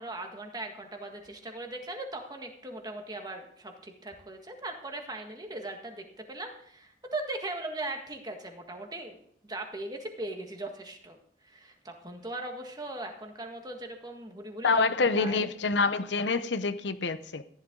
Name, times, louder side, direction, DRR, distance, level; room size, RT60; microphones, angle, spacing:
voice 1, 0.0-11.2 11.4-15.5, right 2 dB, 25° right, 1.7 m, -39 dB
voice 2, 14.6-17.4, left 4 dB, 90° left, 0.8 m, -26 dB
14.0 x 11.0 x 3.8 m
head